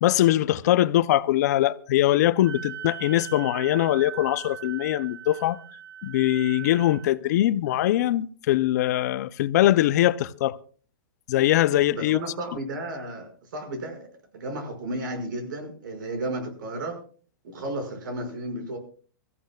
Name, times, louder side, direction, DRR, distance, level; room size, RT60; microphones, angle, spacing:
voice 1, 0.0-5.6 6.0-10.6 11.3-12.2, left 14 dB, 55° left, 0.6 m, -22 dB
Wind instrument woodwind instrument, 2.4-7.1, right 9 dB, 20° right, 1.3 m, -40 dB
voice 2, 11.9-17.0 17.4-18.8, right 1 dB, 70° right, 5.7 m, -33 dB
25.5 x 15.0 x 2.3 m
hypercardioid pair, 155°, 11 cm